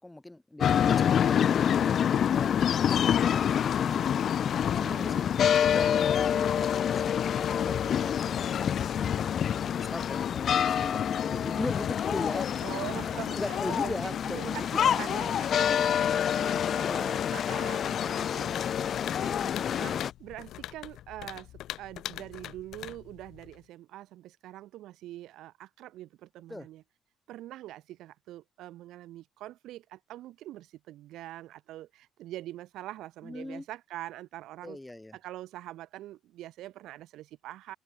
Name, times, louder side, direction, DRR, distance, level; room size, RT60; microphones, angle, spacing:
voice 1, 0.0-4.3 4.8-5.1 5.6-8.7 8.9-12.6 12.9-13.0 13.3-15.0 16.7-17.3 26.5-26.7 33.2-33.7 34.6-35.2, left 1 dB, 10° left, 7.0 m, -40 dB
sound 1, 0.6-20.1, left 9 dB, 50° left, 0.9 m, -27 dB
voice 2, 4.7-5.6 12.6-21.5 21.8-26.8 27.3-34.8 35.1-37.8, right 14 dB, 85° right, 3.1 m, -44 dB
sound 2, 18.5-23.7, left 13 dB, 75° left, 3.2 m, -43 dB
cardioid pair, 145°, 0 cm